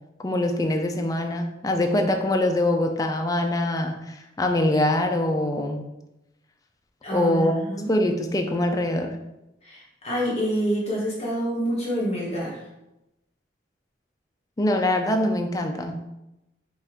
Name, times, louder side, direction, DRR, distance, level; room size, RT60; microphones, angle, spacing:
voice 1, 0.2-5.9 7.1-7.5 7.9-9.1 14.6-16.0, left 1 dB, 20° left, 4 dB, 0.4 m, -23 dB
voice 2, 7.0-7.9 9.6-12.6, equal, 35° left, -5 dB, 1.0 m, -27 dB
5.3 x 2.5 x 3.5 m, 0.94 s
head